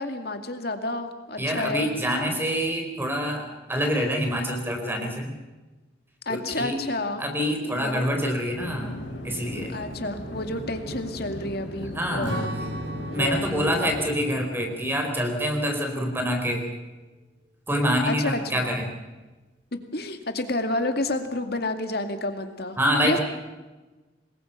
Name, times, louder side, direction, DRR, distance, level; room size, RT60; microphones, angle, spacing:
voice 1, 0.0-1.9 6.3-7.2 7.6-8.1 9.7-12.6 13.1-13.8 18.0-18.7 19.9-22.8 23.0-23.2, left 2 dB, 55° left, 6 dB, 2.3 m, -30 dB
voice 2, 1.4-5.3 6.3-6.8 7.2-9.0 9.2-9.7 12.0-12.4 13.1-16.7 17.7-18.8 22.8-23.2, equal, 10° right, 3 dB, 4.2 m, -26 dB
sound 1, 8.5-14.0, left 1 dB, 75° left, 5.8 m, -37 dB
Strum, 12.2-16.9, right 1 dB, 70° right, 3.1 m, -38 dB
25.5 x 21.5 x 5.8 m, 1.2 s
head